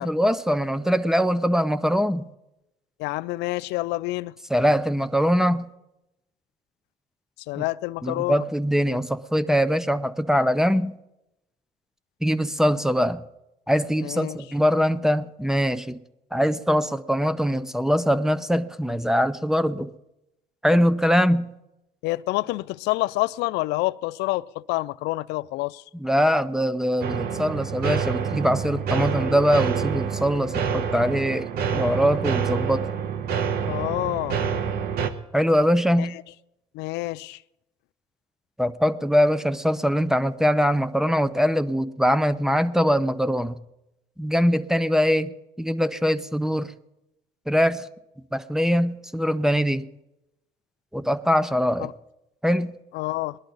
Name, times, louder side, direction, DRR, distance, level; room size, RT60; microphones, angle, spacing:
voice 1, 0.0-2.3 4.5-5.7 7.6-7.7 8.0-11.0 12.2-13.2 13.7-16.0 16.3-19.9 20.6-21.5 26.0-32.9 35.3-36.2 38.6-43.6 44.2-46.7 47.5-47.9 48.3-49.9 50.9-51.9 52.4-52.8, equal, 5° right, 0.6 m, -22 dB
voice 2, 3.0-4.3 7.5-8.4 14.0-14.4 22.0-25.8 33.7-34.4 36.0-36.1 36.7-37.4 51.8-51.9 52.9-53.4, left 20 dB, 90° left, 0.4 m, -28 dB
sound 1, 27.0-35.1, right 7 dB, 65° right, 1.2 m, -27 dB
20.0 x 11.5 x 4.0 m
cardioid pair, 110°, 17 cm